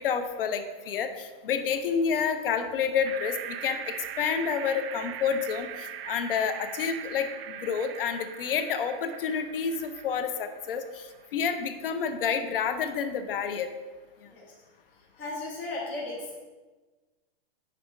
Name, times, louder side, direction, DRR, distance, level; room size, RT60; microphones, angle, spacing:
voice 1, 0.0-3.4 3.6-5.7 6.1-7.3 7.6-10.8 11.3-13.7, left 6 dB, 65° left, 8 dB, 0.7 m, -29 dB
sound 1, 3.0-11.3, right 9 dB, 80° right, 0.5 m, -41 dB
voice 2, 15.2-16.4, left 2 dB, 5° left, -5 dB, 0.4 m, -36 dB
5.3 x 4.1 x 5.2 m, 1.3 s
supercardioid pair, 170°, 29 cm